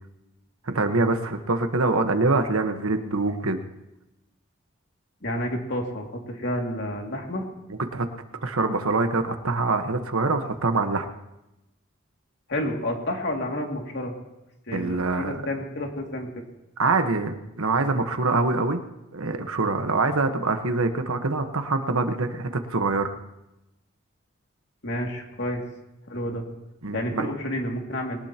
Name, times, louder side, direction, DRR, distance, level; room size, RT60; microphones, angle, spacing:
voice 1, 0.6-3.6 7.7-8.1 8.4-11.1 14.7-15.4 16.8-18.8 19.1-23.1 26.8-27.3, right 3 dB, 90° right, 6 dB, 1.3 m, -24 dB
voice 2, 5.2-7.5 12.5-14.1 14.7-16.3 24.8-25.6 26.1-26.5 26.9-28.2, left 1 dB, 55° left, 1 dB, 2.5 m, -30 dB
22.0 x 18.5 x 3.0 m, 0.94 s
head